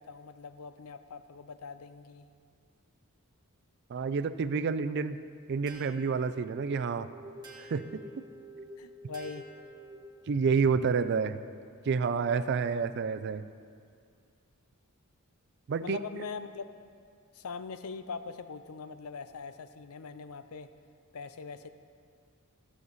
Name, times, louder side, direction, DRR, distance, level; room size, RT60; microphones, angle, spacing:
voice 1, 0.0-2.3 8.8-9.5 15.8-16.7 17.3-20.7 21.1-21.7, left 5 dB, 75° left, 11 dB, 0.5 m, -42 dB
voice 2, 3.9-5.2 5.5-7.1 7.6-7.8 8.2-8.3 10.3-11.4 11.9-13.5 15.7-16.0, right 5 dB, 50° right, 12 dB, 0.4 m, -29 dB
sound 1, 5.7-10.4, right 1 dB, 20° right, 1.4 m, -48 dB
15.0 x 7.2 x 4.0 m, 2.2 s
head